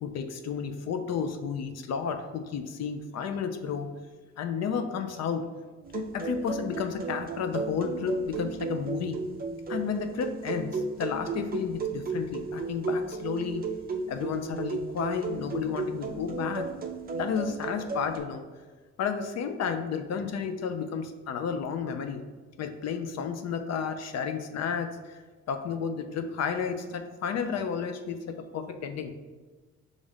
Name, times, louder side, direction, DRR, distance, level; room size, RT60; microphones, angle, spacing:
voice 1, 0.0-3.9 4.4-5.4 5.9-9.2 9.7-13.6 14.1-16.7 17.1-18.4 19.0-22.2 22.6-25.2 25.5-29.1, left 6 dB, 60° left, 7 dB, 0.5 m, -32 dB
sound 1, 5.8-18.2, right 4 dB, 30° right, 0.4 m, -34 dB
5.2 x 2.5 x 3.3 m, 1.3 s
cardioid pair, 90°, 30 cm